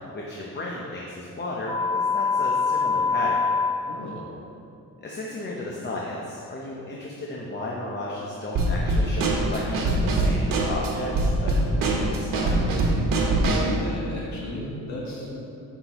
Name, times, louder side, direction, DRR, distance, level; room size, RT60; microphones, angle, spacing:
voice 1, 0.1-3.4 5.0-12.6, left 2 dB, 30° left, -3 dB, 0.9 m, -34 dB
sound 1, 1.7-3.7, left 5 dB, 10° left, 1.6 m, -23 dB
voice 2, 3.8-4.3 13.5-15.4, left 1 dB, 60° left, -3 dB, 1.8 m, -34 dB
Drum kit / Snare drum, 8.5-13.8, right 2 dB, 90° right, 1.3 m, -23 dB
14.0 x 5.9 x 3.0 m, 2.8 s
wide cardioid pair, 155°, 33 cm